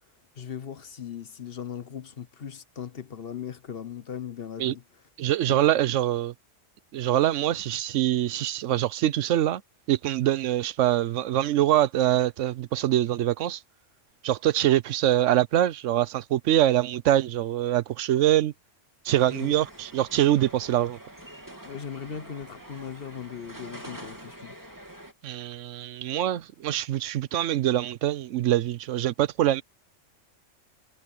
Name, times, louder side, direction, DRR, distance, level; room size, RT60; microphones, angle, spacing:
voice 1, 0.4-4.8 5.5-5.7 19.3-19.5 21.6-24.6, left 8 dB, 55° left, 1.2 m, -38 dB
voice 2, 5.2-6.3 6.9-9.6 9.9-13.6 14.2-18.5 19.0-21.0 25.2-29.6, right 12 dB, 85° right, 1.0 m, -24 dB
sound 1, 19.1-25.1, right 1 dB, 15° right, 2.7 m, -45 dB
omnidirectional pair, 1.3 m